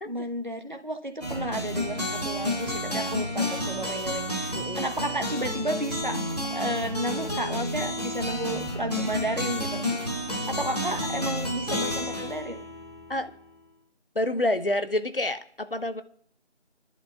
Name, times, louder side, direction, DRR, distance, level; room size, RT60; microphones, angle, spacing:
voice 1, 0.0-6.2 6.5-9.8 10.5-12.6, right 1 dB, 45° right, 6 dB, 1.0 m, -32 dB
sound 1, 1.2-13.5, left 1 dB, 35° left, 1.8 m, -31 dB
voice 2, 4.5-4.9 9.9-10.0 13.1-13.3 14.2-16.0, left 1 dB, 50° left, 11 dB, 0.6 m, -28 dB
26.0 x 11.0 x 2.3 m, 0.63 s
figure-of-eight pair, 175°, 35 cm